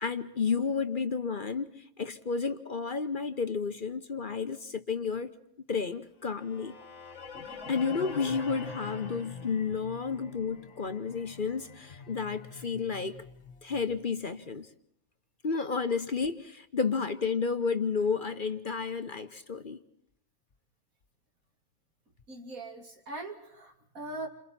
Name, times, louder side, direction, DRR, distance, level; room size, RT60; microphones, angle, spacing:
voice 1, 0.0-5.3 5.7-6.7 7.7-13.2 13.6-14.7 15.4-19.8, left 5 dB, 40° left, 1.2 m, -31 dB
sound 1, 6.3-14.4, left 5 dB, 55° left, 1.9 m, -45 dB
voice 2, 22.3-24.3, right 2 dB, 85° right, 3.4 m, -41 dB
29.5 x 27.0 x 4.4 m
omnidirectional pair, 1.4 m